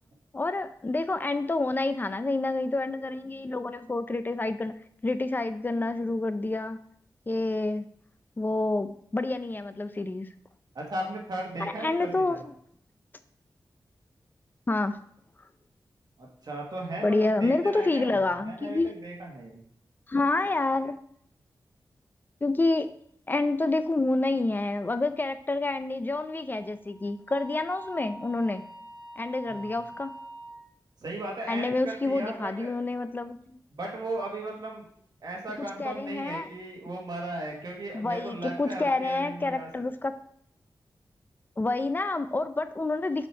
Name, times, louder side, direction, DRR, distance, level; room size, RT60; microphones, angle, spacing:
voice 1, 0.3-4.7 5.0-6.8 7.3-7.9 8.4-10.3 11.6-12.5 14.7-15.0 17.0-19.0 20.1-21.0 22.4-22.9 23.3-28.6 29.2-30.1 31.5-33.6 35.8-36.5 37.9-40.1 41.6-43.3, left 2 dB, 25° left, 11 dB, 0.5 m, -28 dB
voice 2, 10.8-12.5 16.2-19.6 29.5-29.7 31.0-32.7 33.7-34.8 35.2-39.7, right 1 dB, 65° right, -1 dB, 1.7 m, -37 dB
Wind instrument woodwind instrument, 26.3-30.6, right 1 dB, 75° left, 3.0 m, -45 dB
7.1 x 4.5 x 4.6 m, 0.66 s
wide cardioid pair, 110°, 7 cm